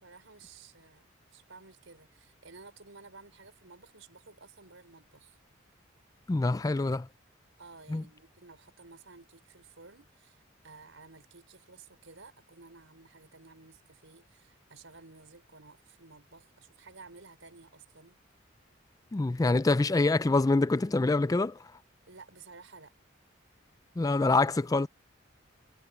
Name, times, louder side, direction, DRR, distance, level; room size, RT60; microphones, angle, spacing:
voice 1, 0.0-5.4 7.6-18.2 22.0-22.9, right 4 dB, 85° right, 4.8 m, -54 dB
voice 2, 6.3-7.1 7.9-8.0 19.1-21.6 24.0-24.9, left 3 dB, 20° left, 0.3 m, -25 dB
head